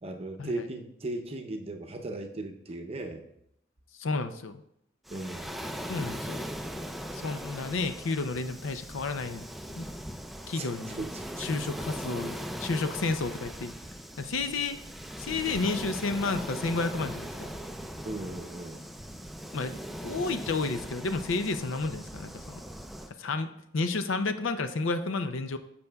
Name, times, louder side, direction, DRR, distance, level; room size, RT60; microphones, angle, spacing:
voice 1, 0.0-3.3 5.1-5.6 10.6-11.5 18.0-18.8, right 2 dB, 30° right, 4 dB, 0.7 m, -37 dB
voice 2, 4.0-4.6 5.9-6.5 7.1-9.4 9.7-9.9 10.5-11.1 11.4-13.7 14.2-14.8 15.2-17.5 19.5-22.6 23.2-25.6, left 3 dB, 80° left, 10 dB, 0.6 m, -31 dB
Waves surf, 5.1-23.1, equal, ahead, 0.3 m, -39 dB
10.5 x 6.9 x 2.3 m, 0.76 s
head